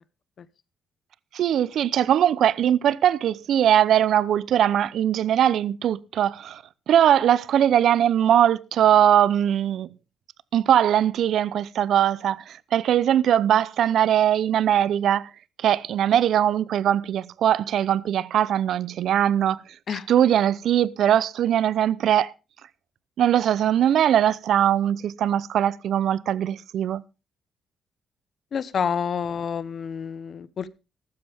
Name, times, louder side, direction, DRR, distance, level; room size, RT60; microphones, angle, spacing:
voice 1, 1.3-9.9 10.5-15.3 15.6-19.6 19.9-22.3 23.2-27.0, right 10 dB, 70° right, 0.7 m, -21 dB
voice 2, 28.5-30.7, left 7 dB, 50° left, 1.0 m, -28 dB
15.0 x 12.5 x 3.5 m
cardioid pair, 90°, 0 cm